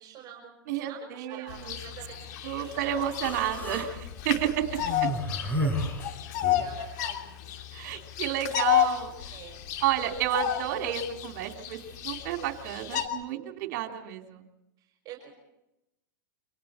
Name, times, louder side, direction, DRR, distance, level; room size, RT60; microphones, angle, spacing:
voice 1, 0.0-3.0 4.2-4.3 4.7-4.9 5.4-6.0 6.3-7.4 9.3-9.6 14.8-15.3, right 8 dB, 35° right, 1 dB, 5.7 m, -48 dB
voice 2, 0.7-1.7 2.4-5.1 7.7-9.1 9.8-11.8 12.0-14.4, right 11 dB, 55° right, 4 dB, 3.3 m, -31 dB
Bird vocalization bird call bird song, 1.5-13.1, left 12 dB, 60° left, 2.9 m, -32 dB
Human voice, 3.1-3.9 4.8-6.8, equal, 15° left, 6.1 m, -32 dB
28.5 x 25.0 x 4.4 m, 0.91 s
hypercardioid pair, 110°, 11 cm